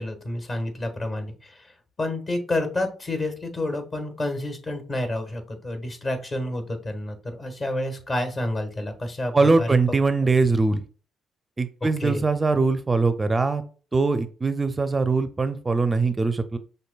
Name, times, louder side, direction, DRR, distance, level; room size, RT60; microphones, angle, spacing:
voice 1, 0.0-1.7 2.0-9.8 12.0-12.2, left 1 dB, 45° left, 5 dB, 1.4 m, -29 dB
voice 2, 9.3-10.8 11.6-13.6 13.9-16.6, right 3 dB, 30° right, 10 dB, 0.4 m, -22 dB
5.9 x 2.6 x 2.3 m, 0.37 s
hypercardioid pair, 50°, 0 cm